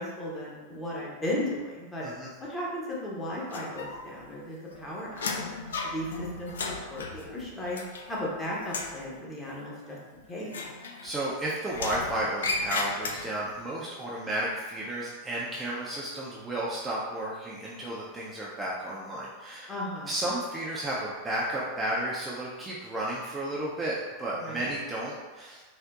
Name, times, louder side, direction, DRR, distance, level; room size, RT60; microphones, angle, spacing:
voice 1, 0.0-2.0 2.4-5.4 5.8-7.8 8.1-10.5 19.7-20.2 24.4-24.7, left 1 dB, 15° left, -5 dB, 0.8 m, -35 dB
sound 1, 3.5-4.3 4.6-8.3 8.6-9.0 10.4-11.3 11.7-13.5, left 3 dB, 65° left, 0.3 m, -35 dB
voice 2, 11.0-19.7 20.1-25.7, right 1 dB, 15° right, -6 dB, 0.4 m, -33 dB
3.6 x 2.5 x 2.3 m, 1.3 s
figure-of-eight pair, 90°, 0 cm